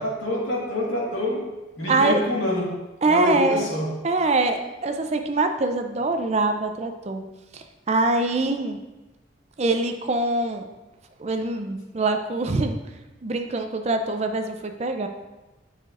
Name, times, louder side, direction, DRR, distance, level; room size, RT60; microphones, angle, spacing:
voice 1, 0.0-2.8 3.0-4.0, left 1 dB, 90° left, -3 dB, 1.8 m, -27 dB
voice 2, 1.9-2.2 3.0-3.7 4.0-7.2 7.5-8.8 9.6-10.6 11.2-12.8 13.2-15.1, right 2 dB, 35° right, 6 dB, 0.5 m, -24 dB
9.2 x 5.8 x 2.5 m, 1.1 s
head